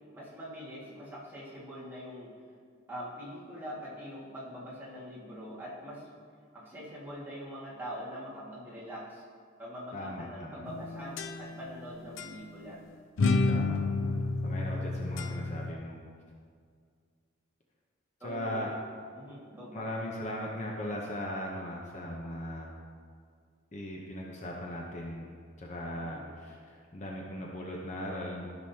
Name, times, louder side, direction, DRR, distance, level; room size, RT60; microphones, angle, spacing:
voice 1, 0.1-2.3 2.9-6.1 6.5-9.3 9.6-12.8 18.2-18.7 19.1-19.9 25.9-26.2, equal, 10° right, -8 dB, 1.9 m, -43 dB
voice 2, 9.9-10.6 13.5-16.0 18.2-18.7 19.7-22.7 23.7-25.3 25.6-28.5, left 1 dB, 35° left, -2 dB, 0.8 m, -38 dB
sound 1, 10.7-11.8 12.2-12.3 13.2-15.7, left 3 dB, 75° left, 0.5 m, -30 dB
13.5 x 6.2 x 2.8 m, 2.1 s
head